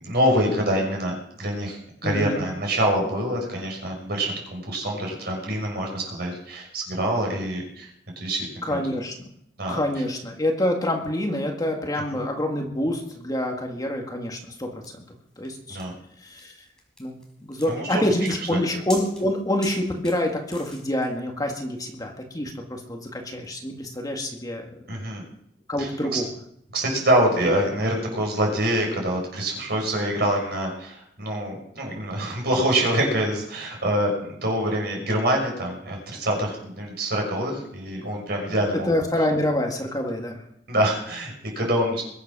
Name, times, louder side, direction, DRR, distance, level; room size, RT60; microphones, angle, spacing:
voice 1, 0.0-7.9 8.2-8.8 9.6-9.8 12.1-12.2 15.7-15.9 17.7-18.0 18.5-18.6 24.9-25.2 25.8-26.2 26.7-38.9 40.7-42.0, right 1 dB, 60° right, 0 dB, 5.8 m, -25 dB
voice 2, 2.0-2.5 8.6-9.1 9.7-15.0 15.4-15.8 16.2-16.5 17.0-17.2 17.5-24.7 25.7-26.3 38.5-40.4, left 1 dB, 20° left, 2 dB, 2.0 m, -27 dB
sound 1, 14.8-21.1, left 1 dB, 5° left, 4.2 m, -43 dB
22.0 x 8.3 x 6.2 m, 0.72 s
head